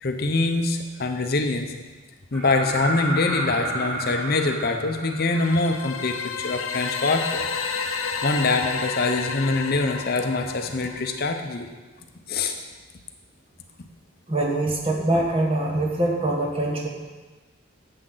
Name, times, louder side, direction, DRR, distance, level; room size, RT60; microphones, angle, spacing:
voice 1, 0.0-1.7 2.3-7.5 8.2-11.7 12.3-12.5, left 3 dB, 50° left, 5 dB, 0.7 m, -24 dB
sound 1, 2.3-6.1 8.0-8.1, equal, 5° left, 2.0 m, -31 dB
sound 2, 5.3-11.3, left 5 dB, 85° left, 0.7 m, -31 dB
voice 2, 14.3-16.9, right 1 dB, 30° right, 0 dB, 1.2 m, -23 dB
10.0 x 7.7 x 3.9 m, 1.3 s
head